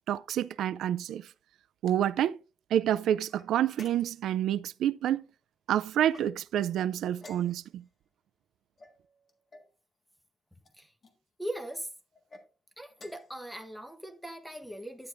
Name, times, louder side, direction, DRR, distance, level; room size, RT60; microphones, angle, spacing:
voice 1, 0.1-1.3 1.8-2.4 2.7-5.2 5.7-7.8, right 11 dB, 90° right, 0.3 m, -28 dB
sound 1, 3.3-4.4 6.0-6.6 7.2-7.9 8.8-9.7 10.6-11.2 12.1-12.5 12.9-13.4, left 2 dB, 35° left, 1.7 m, -54 dB
voice 2, 11.4-11.9 12.8-15.1, right 1 dB, ahead, 1.0 m, -39 dB
10.5 x 9.6 x 2.5 m
wide cardioid pair, 170°, 0 cm